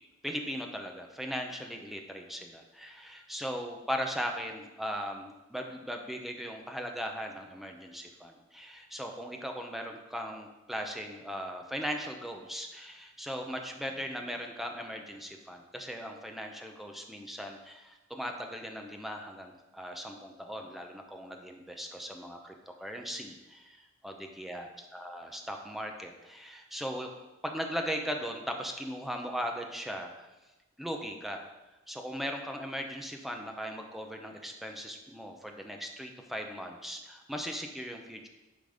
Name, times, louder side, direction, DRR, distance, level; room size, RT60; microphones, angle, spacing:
voice 1, 0.0-22.5 22.8-27.1 27.4-30.3 30.8-31.4 31.9-38.3, equal, ahead, 2 dB, 0.7 m, -38 dB
10.5 x 3.9 x 5.0 m, 1.1 s
head